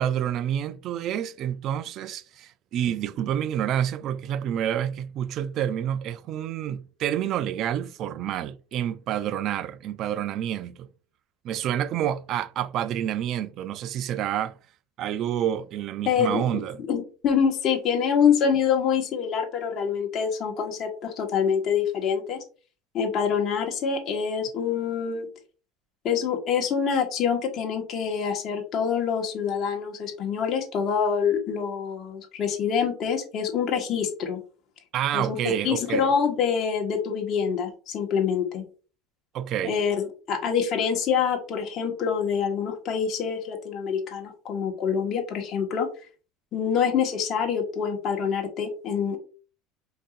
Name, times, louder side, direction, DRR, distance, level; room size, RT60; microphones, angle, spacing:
voice 1, 0.0-10.9 11.4-14.6 15.0-16.8 34.9-36.1 39.3-39.7, right 10 dB, 50° right, 0.5 m, -28 dB
voice 2, 16.0-16.4 16.8-22.4 22.9-25.3 26.0-34.4 35.1-35.4 35.6-38.6 39.6-45.9 46.5-49.2, left 7 dB, 45° left, 1.5 m, -26 dB
5.1 x 4.1 x 2.5 m
supercardioid pair, 105°, 0 cm